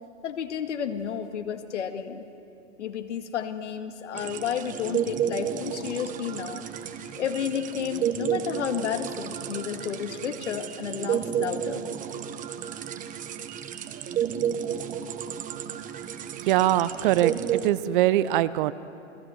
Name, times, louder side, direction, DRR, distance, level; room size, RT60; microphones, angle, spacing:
voice 1, 0.2-2.2 2.8-6.6 7.2-11.8, left 8 dB, 70° left, 7 dB, 2.0 m, -31 dB
sound 1, 4.1-17.7, right 9 dB, 20° right, 1.1 m, -31 dB
voice 2, 16.5-18.7, right 14 dB, 45° right, 15 dB, 0.8 m, -22 dB
29.0 x 18.0 x 7.9 m, 2.7 s
hypercardioid pair, 115°, 37 cm